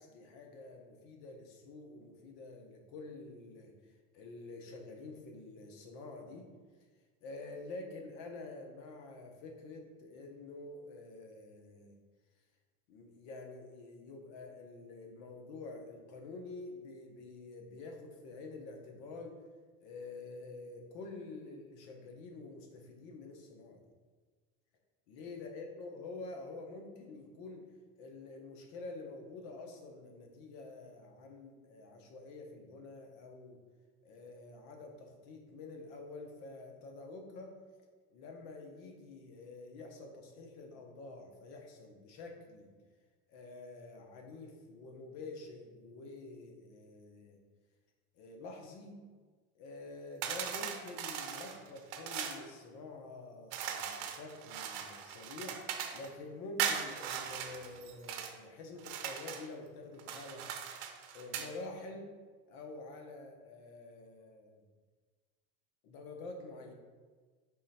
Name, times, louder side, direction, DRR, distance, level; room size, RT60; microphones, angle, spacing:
voice 1, 0.0-3.7 4.1-6.5 7.2-11.9 12.9-19.4 19.8-23.9 25.1-27.6 28.0-33.6 34.0-37.5 38.1-42.7 43.3-47.4 48.1-49.1 49.5-60.5 61.1-62.1 62.5-64.6 65.8-66.7, left 3 dB, 80° left, 3 dB, 1.0 m, -48 dB
sound 1, 50.2-52.4 53.5-56.1 56.6-58.3 58.8-59.5 60.0-61.5, right 8 dB, 70° right, 0.6 m, -39 dB
3.7 x 3.2 x 4.2 m, 1.4 s
cardioid pair, 125°, 34 cm